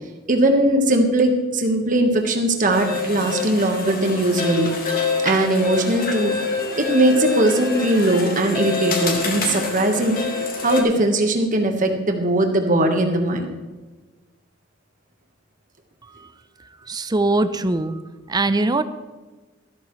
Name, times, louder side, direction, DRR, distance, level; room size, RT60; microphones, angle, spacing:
voice 1, 0.3-4.7 5.2-6.4 6.8-10.2 10.6-13.5, right 1 dB, 45° right, 4 dB, 1.4 m, -19 dB
sound 1, 2.7-10.8, left 4 dB, 50° left, 1.9 m, -26 dB
voice 2, 16.9-18.0 18.3-18.8, right 2 dB, 20° right, 12 dB, 0.5 m, -21 dB
13.0 x 13.0 x 3.2 m, 1.3 s
head